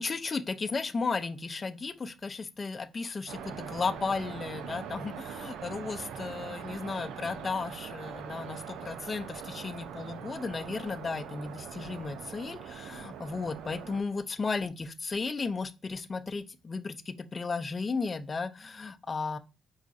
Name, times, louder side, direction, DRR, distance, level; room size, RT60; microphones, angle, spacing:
voice 1, 0.0-19.4, left 4 dB, 35° left, 0.4 m, -34 dB
sound 1, 3.3-14.0, right 8 dB, 85° right, 0.4 m, -42 dB
4.7 x 2.5 x 2.4 m
cardioid pair, 90°, 0 cm